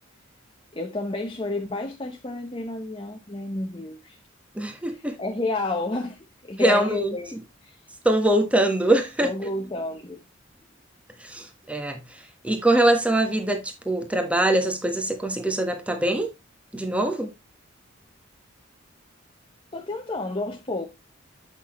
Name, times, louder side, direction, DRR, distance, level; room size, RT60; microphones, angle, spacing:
voice 1, 0.7-4.2 4.9-7.3 7.6-7.8 9.2-10.2 19.7-20.9, left 2 dB, 25° left, 0.8 m, -31 dB
voice 2, 4.5-5.2 6.6-7.4 8.0-9.3 11.2-16.3 16.7-17.3, right 1 dB, 5° right, 1.1 m, -23 dB
8.2 x 6.1 x 3.0 m
head